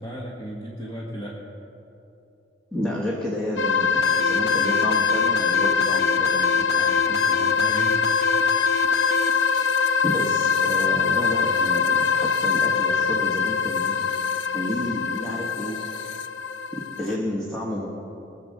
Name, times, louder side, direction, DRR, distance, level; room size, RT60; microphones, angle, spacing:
voice 1, 0.0-1.4 6.7-8.0 12.5-12.6, equal, 20° left, -4 dB, 1.4 m, -36 dB
voice 2, 2.7-6.8 9.5-9.7 10.0-14.0 14.5-15.8 16.7-17.9, left 1 dB, 5° left, -5 dB, 1.4 m, -30 dB
sound 1, 3.6-17.1, left 6 dB, 80° left, 0.6 m, -23 dB
sound 2, 4.0-9.3, left 5 dB, 60° left, 1.0 m, -29 dB
19.5 x 7.6 x 6.5 m, 2.9 s
head